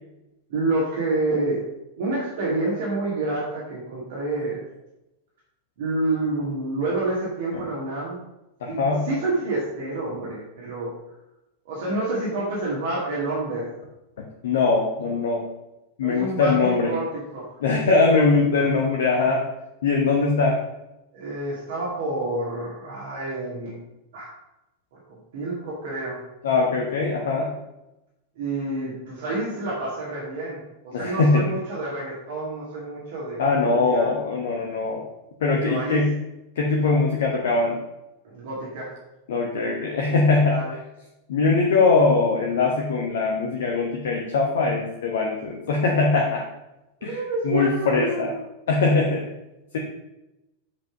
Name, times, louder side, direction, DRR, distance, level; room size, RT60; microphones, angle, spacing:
voice 1, 0.5-1.6 2.0-4.6 5.8-8.2 8.7-8.8 9.0-10.9 11.7-13.7 16.0-17.0 17.3-18.2 18.5-18.7 21.1-23.8 24.1-24.3 25.3-26.2 28.4-34.1 35.5-36.0 38.2-38.9 40.5-40.7 47.0-48.4, right 2 dB, 55° right, -6 dB, 2.3 m, -28 dB
voice 2, 8.6-9.1 14.4-15.5 16.0-17.0 17.6-19.5 19.8-20.6 26.4-27.5 30.9-31.5 33.4-35.1 35.4-36.2 36.5-37.8 39.3-40.6 41.3-46.5 47.0-48.4 48.7-49.3 49.7-49.8, left 4 dB, 60° left, 0 dB, 1.1 m, -21 dB
7.5 x 5.3 x 5.1 m, 0.93 s
figure-of-eight pair, 90°, 0 cm